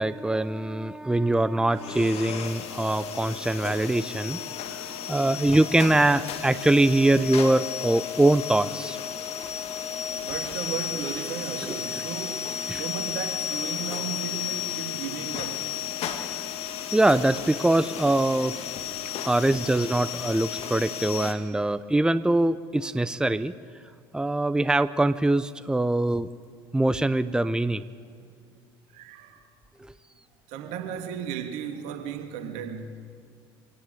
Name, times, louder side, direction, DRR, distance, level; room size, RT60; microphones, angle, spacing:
voice 1, 0.0-9.0 12.7-12.8 16.9-18.6 19.2-23.5 24.1-26.3 26.7-27.8 29.8-29.9, right 2 dB, 5° right, 15 dB, 0.7 m, -23 dB
sound 1, 1.7-21.3, left 9 dB, 55° left, 2.2 m, -33 dB
voice 2, 10.1-15.6 18.8-19.3 28.9-29.5 30.5-32.9, right 8 dB, 65° right, 5 dB, 2.2 m, -35 dB
24.0 x 17.5 x 8.2 m, 2.1 s
hypercardioid pair, 65°, 13 cm